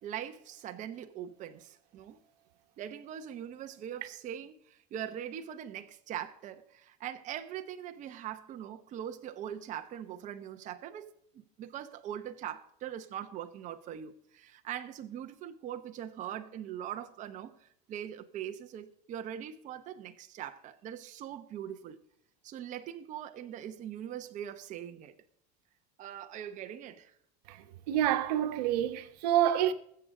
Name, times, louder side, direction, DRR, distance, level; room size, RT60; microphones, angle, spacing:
voice 1, 0.0-2.2 2.8-22.0 22.4-25.1 26.0-27.1, right 10 dB, 40° right, 1.0 m, -42 dB
voice 2, 27.5-29.7, right 11 dB, 85° right, 1.3 m, -28 dB
20.5 x 8.0 x 3.8 m
supercardioid pair, 135°, 20 cm